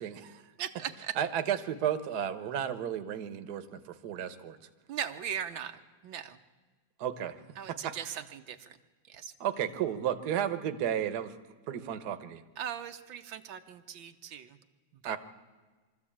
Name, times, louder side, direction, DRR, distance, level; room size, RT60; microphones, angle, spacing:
voice 1, 0.0-0.4 1.2-4.6 7.0-7.3 7.7-8.1 9.4-11.3 11.7-12.4 15.0-15.2, right 9 dB, 60° right, 10 dB, 1.5 m, -33 dB
voice 2, 0.6-1.2 4.9-6.4 7.6-8.8 9.1-9.3 12.6-14.6 14.9-15.2, right 9 dB, 80° right, 7 dB, 1.6 m, -39 dB
23.5 x 14.0 x 8.6 m, 1.4 s
omnidirectional pair, 2.1 m